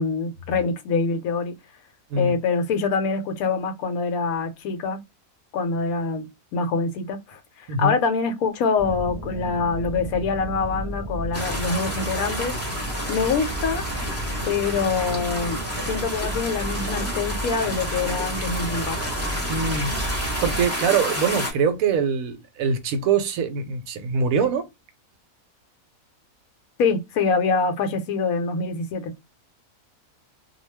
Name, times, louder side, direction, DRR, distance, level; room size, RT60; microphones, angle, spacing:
voice 1, 0.0-1.5 2.2-5.0 5.5-6.3 6.5-12.5 13.1-13.8 14.5-15.6 15.9-19.0 26.8-29.1, left 4 dB, 75° left, 1.0 m, -25 dB
sound 1, 8.8-20.7, right 1 dB, 45° right, 0.3 m, -32 dB
sound 2, 11.3-21.5, equal, 15° left, 0.7 m, -30 dB
voice 2, 19.5-24.7, right 5 dB, 75° right, 1.0 m, -24 dB
2.3 x 2.2 x 3.1 m
omnidirectional pair, 1.6 m